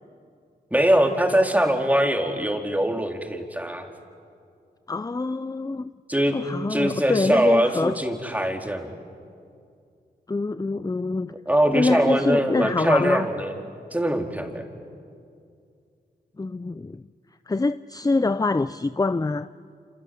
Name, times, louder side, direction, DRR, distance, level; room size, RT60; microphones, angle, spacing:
voice 1, 0.7-3.9 6.1-6.3 6.7-9.0 11.5-13.6 13.9-14.6, right 1 dB, 10° right, 3 dB, 4.0 m, -22 dB
voice 2, 4.9-5.9 6.3-8.0 10.3-11.3 11.7-13.3 16.4-17.0 17.5-19.5, left 3 dB, 20° left, 13 dB, 0.6 m, -25 dB
27.5 x 27.5 x 7.9 m, 2.4 s
cardioid pair, 45°, 18 cm